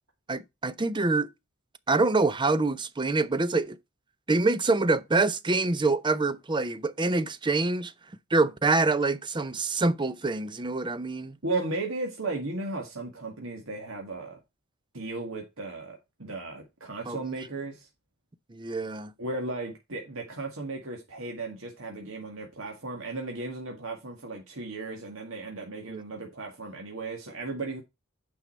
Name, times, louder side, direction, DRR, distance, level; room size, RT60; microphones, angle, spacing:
voice 1, 0.3-1.3 1.9-3.8 4.3-7.9 8.3-11.4 17.1-17.3 18.5-19.1 25.9-26.0, right 3 dB, 20° right, 0.6 m, -26 dB
voice 2, 11.4-14.4 14.9-17.9 19.2-27.8, right 2 dB, 65° right, 2.0 m, -35 dB
9.1 x 5.6 x 4.4 m
head